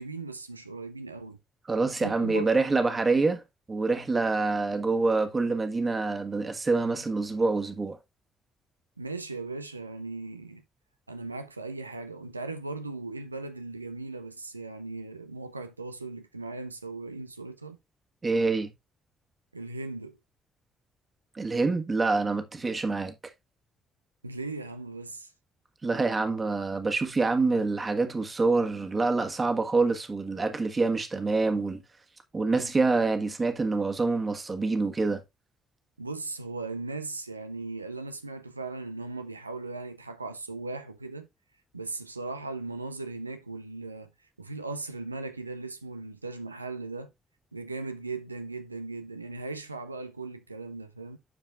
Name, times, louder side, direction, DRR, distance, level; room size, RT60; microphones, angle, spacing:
voice 1, 0.0-1.4 2.0-2.5 9.0-10.6 11.1-17.8 19.5-20.2 24.2-25.3 36.0-41.3 41.7-44.1 44.4-47.1 47.5-51.2, right 3 dB, 90° right, 0.6 m, -38 dB
voice 2, 1.7-3.4 3.7-8.0 18.2-18.7 21.4-23.1 25.8-31.8 32.3-35.2, right 3 dB, 30° right, 1.7 m, -26 dB
12.0 x 4.7 x 2.5 m
figure-of-eight pair, 45°, 0 cm